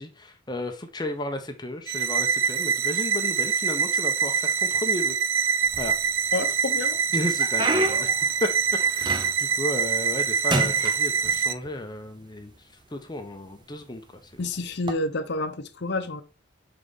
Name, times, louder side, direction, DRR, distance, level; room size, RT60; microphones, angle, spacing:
voice 1, 0.0-6.0 7.1-8.5 8.9-14.5, left 1 dB, 20° left, 0.7 m, -34 dB
sound 1, 1.9-11.5, right 6 dB, 75° right, 0.6 m, -25 dB
sound 2, 5.6-6.4 6.9-9.6 10.0-10.2 10.5-11.7 12.5-12.6 13.3-13.6 14.7-14.9, right 1 dB, 20° right, 0.6 m, -29 dB
voice 2, 6.3-7.0 14.4-16.2, left 2 dB, 55° left, 0.7 m, -29 dB
6.7 x 3.9 x 3.6 m
head